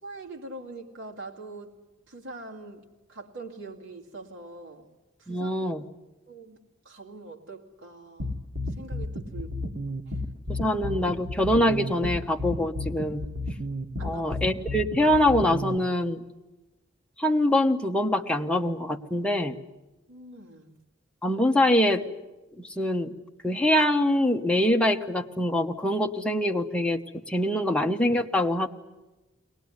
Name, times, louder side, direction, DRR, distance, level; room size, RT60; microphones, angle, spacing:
voice 1, 0.0-1.8 2.1-4.9 5.2-5.7 6.3-8.4 8.7-9.7 10.1-10.2 14.0-14.3 20.1-20.7, right 2 dB, 70° right, -1 dB, 2.4 m, -43 dB
voice 2, 5.3-5.8 10.5-13.2 14.0-16.2 17.2-19.6 21.2-22.0 22.6-23.1 23.4-27.0 27.3-28.7, left 1 dB, 5° left, 2 dB, 1.2 m, -24 dB
sound 1, 8.2-15.8, left 1 dB, 85° right, 1.9 m, -32 dB
22.5 x 19.0 x 9.8 m, 1.1 s
head